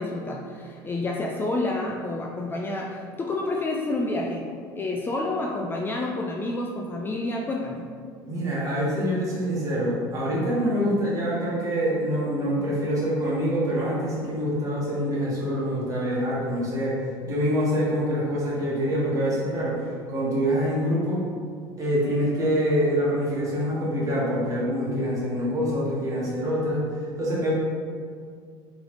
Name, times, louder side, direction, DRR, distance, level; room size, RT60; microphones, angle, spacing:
voice 1, 0.0-4.5 4.8-7.9, left 2 dB, 20° left, 0 dB, 0.3 m, -29 dB
voice 2, 8.3-21.2 21.8-26.8 27.2-27.5, equal, 30° right, -6 dB, 1.4 m, -25 dB
3.8 x 3.2 x 3.1 m, 2.1 s
supercardioid pair, 110°, 11 cm